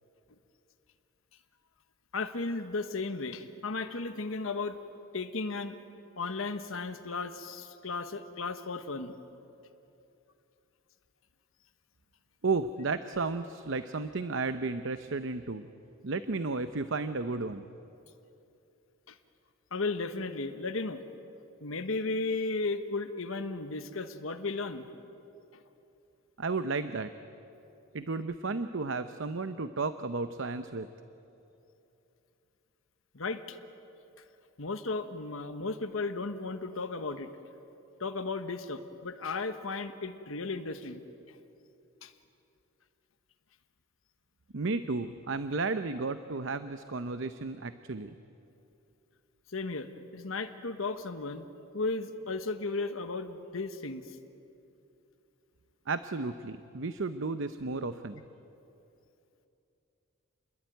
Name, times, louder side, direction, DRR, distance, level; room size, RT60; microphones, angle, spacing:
voice 1, 2.1-4.8 5.1-5.7 6.2-9.2 19.1-19.2 19.7-21.0 21.6-24.9 33.1-33.6 34.6-37.3 38.0-41.0 41.3-41.4 42.0-42.1 49.5-51.4 51.7-54.2, left 3 dB, 70° left, 8 dB, 1.3 m, -35 dB
voice 2, 12.4-15.7 16.0-17.7 26.4-27.1 27.9-30.9 44.5-48.2 55.9-58.2, right 3 dB, 60° right, 11 dB, 0.8 m, -33 dB
28.5 x 21.5 x 9.2 m, 2.8 s
head